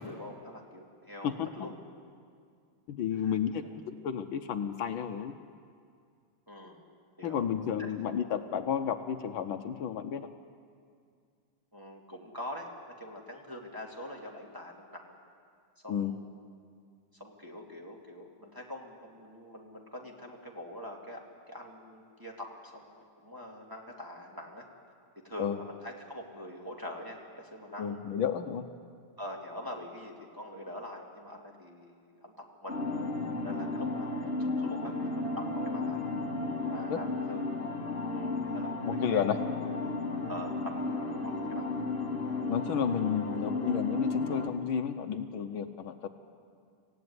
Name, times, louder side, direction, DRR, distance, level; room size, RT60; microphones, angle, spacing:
voice 1, 0.0-1.8 3.1-3.4 3.6-3.7 6.5-6.8 7.2-7.5 7.8-7.9 11.7-12.7 13.0-15.2 15.8-16.5 17.1-24.7 25.2-28.0 29.2-32.3 32.6-32.8 33.3-34.2 34.6-36.0 36.5-37.4 38.1-39.3 40.3-41.7, left 1 dB, 10° right, -2 dB, 2.3 m, -44 dB
voice 2, 2.9-3.6 4.0-5.3 7.2-10.3 15.9-16.1 25.4-25.6 27.8-28.6 36.9-37.0 39.0-39.4 42.5-46.1, left 8 dB, 75° left, 8 dB, 1.6 m, -31 dB
sound 1, 32.7-44.5, left 3 dB, 30° left, 2.2 m, -33 dB
25.5 x 16.0 x 9.6 m, 2.2 s
omnidirectional pair, 2.3 m